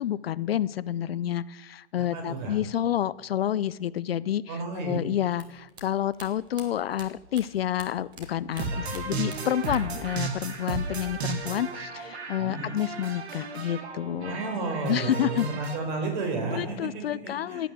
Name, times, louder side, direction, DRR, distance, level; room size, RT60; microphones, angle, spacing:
voice 1, 0.0-14.4 14.9-15.5 16.5-17.7, left 11 dB, 55° left, 18 dB, 0.5 m, -29 dB
voice 2, 2.0-2.5 4.5-5.0 8.7-8.9 12.4-12.7 14.2-17.6, right 3 dB, 40° right, 4 dB, 4.8 m, -32 dB
sound 1, 5.3-8.3 8.5-10.1 10.3-11.1, right 3 dB, 15° right, 1.5 m, -46 dB
sound 2, 8.5-15.8, right 4 dB, 65° right, 2.5 m, -34 dB
15.5 x 9.2 x 7.7 m, 1.1 s
hypercardioid pair, 160°, 35 cm